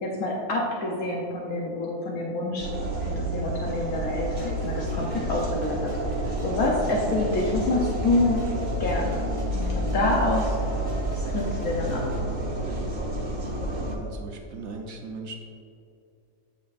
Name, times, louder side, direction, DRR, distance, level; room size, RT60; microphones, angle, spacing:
voice 1, 0.0-2.7 3.1-5.9 6.4-8.4 8.8-9.2 9.5-10.6 11.3-12.2, left 2 dB, 80° left, -2 dB, 1.3 m, -27 dB
sound 1, 2.6-14.0, right 1 dB, 35° right, 1.0 m, -29 dB
sound 2, 4.2-12.2, right 1 dB, 30° left, 1.8 m, -41 dB
voice 2, 13.9-15.4, right 3 dB, 75° right, 2 dB, 1.3 m, -38 dB
8.6 x 6.7 x 2.5 m, 2.5 s
omnidirectional pair, 1.5 m